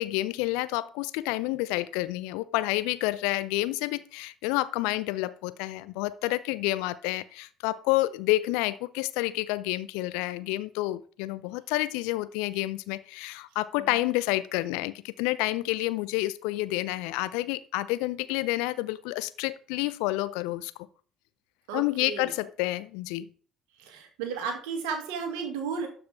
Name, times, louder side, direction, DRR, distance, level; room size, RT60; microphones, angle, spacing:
voice 1, 0.0-20.7 21.7-23.3, left 18 dB, 65° left, 0.5 m, -29 dB
voice 2, 21.7-22.3 23.8-25.9, right 6 dB, 70° right, 1.8 m, -34 dB
12.0 x 4.9 x 3.5 m
figure-of-eight pair, 50°, 0 cm